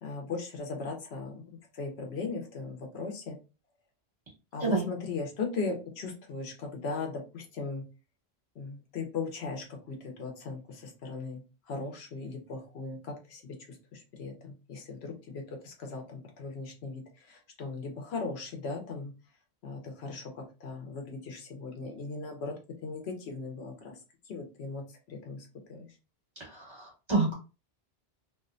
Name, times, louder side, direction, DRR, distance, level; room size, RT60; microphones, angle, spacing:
voice 1, 0.0-3.4 4.5-7.8 8.6-11.4 11.7-19.1 19.6-24.0 24.3-25.9, left 4 dB, 85° left, 3 dB, 0.9 m, -38 dB
voice 2, 26.5-27.3, right 3 dB, 25° right, -6 dB, 1.3 m, -28 dB
2.6 x 2.1 x 2.5 m, 0.31 s
omnidirectional pair, 1.1 m